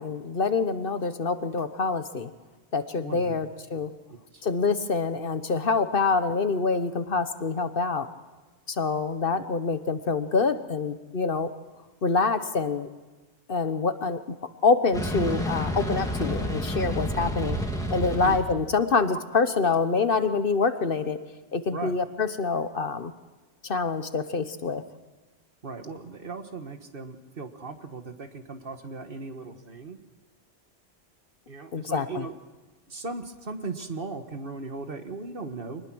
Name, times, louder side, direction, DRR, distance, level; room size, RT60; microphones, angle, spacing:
voice 1, 0.0-2.3 2.7-3.9 4.4-8.1 8.8-11.5 12.0-12.9 13.5-14.2 14.6-17.6 17.9-21.2 21.5-23.1 23.6-24.8 31.7-32.2, left 4 dB, 55° left, 11 dB, 1.2 m, -26 dB
voice 2, 3.0-3.4 3.8-3.9 4.3-4.4 18.2-18.6 21.7-21.9 25.6-30.0 31.5-32.3 32.9-35.8, right 3 dB, 55° right, 7 dB, 1.7 m, -37 dB
sound 1, 14.9-18.4, equal, 5° left, 2.7 m, -29 dB
25.0 x 20.5 x 6.2 m, 1.3 s
omnidirectional pair, 1.1 m